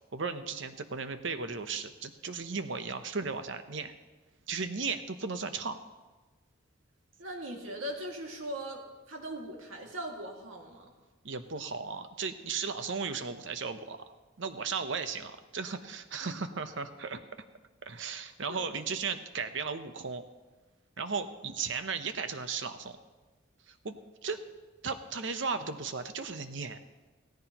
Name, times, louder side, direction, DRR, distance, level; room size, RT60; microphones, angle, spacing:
voice 1, 0.1-3.9 4.5-5.8 11.2-14.0 14.4-17.2 17.9-20.2 21.0-23.0 23.7-24.4 24.8-26.8, right 5 dB, 65° right, 9 dB, 0.8 m, -36 dB
voice 2, 7.2-10.9 16.2-16.4 18.5-18.7, right 1 dB, 80° right, 0 dB, 2.1 m, -40 dB
17.0 x 14.0 x 3.0 m, 1.2 s
head